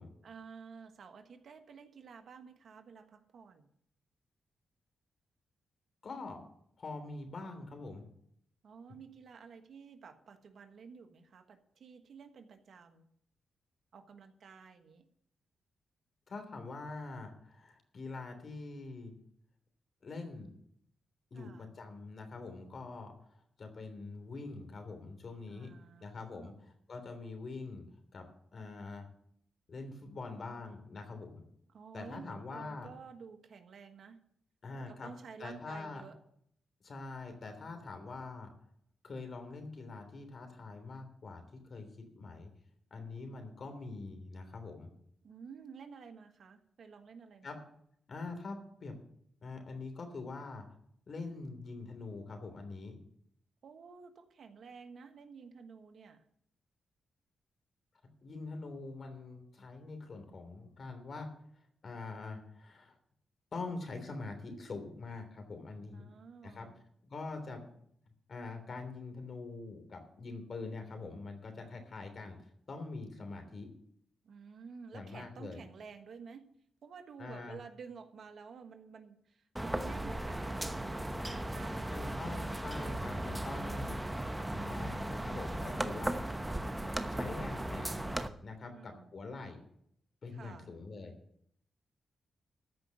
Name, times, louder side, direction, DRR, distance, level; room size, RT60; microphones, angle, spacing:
voice 1, 0.2-3.7 8.6-13.1 13.9-15.1 21.3-21.7 25.5-26.6 31.7-34.2 34.7-36.2 45.2-47.7 53.6-56.3 65.9-66.8 74.2-76.5 76.8-82.2 88.6-89.2 90.3-90.7, right 5 dB, 65° right, 7 dB, 1.4 m, -52 dB
voice 2, 6.0-6.4 6.8-8.1 16.3-19.1 20.0-20.5 21.3-23.1 23.6-25.7 26.0-26.5 26.9-27.9 28.1-29.1 29.7-31.4 31.9-32.9 34.6-35.1 35.4-36.0 36.8-38.5 39.0-41.4 41.7-42.5 42.9-44.9 47.4-47.5 48.1-49.0 49.4-50.6 51.1-53.0 58.2-61.3 61.8-63.0 63.5-66.0 66.4-66.7 67.0-67.6 68.3-72.4 72.7-73.7 74.9-75.6 77.2-77.6 81.9-86.7 87.1-88.1 88.4-89.6 90.2-91.1, left 3 dB, 55° left, 6 dB, 3.2 m, -44 dB
sound 1, 79.6-88.3, right 1 dB, 10° right, 1.0 m, -37 dB
14.0 x 5.4 x 9.2 m, 0.69 s
cardioid pair, 70°, 0 cm